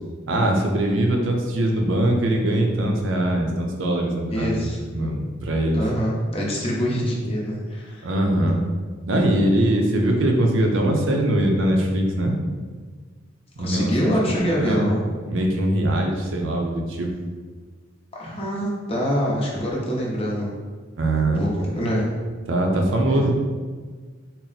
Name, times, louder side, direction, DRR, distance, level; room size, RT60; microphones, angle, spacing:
voice 1, 0.3-5.8 8.0-8.6 9.1-12.3 13.6-13.9 14.3-14.9 15.3-17.1 21.0-21.4 22.5-23.3, right 1 dB, 75° right, 1 dB, 0.6 m, -22 dB
voice 2, 4.3-4.8 5.7-8.1 13.6-15.0 18.1-20.5 21.3-22.1 23.1-23.3, equal, 30° left, -3 dB, 0.7 m, -25 dB
4.1 x 2.0 x 4.0 m, 1.5 s
head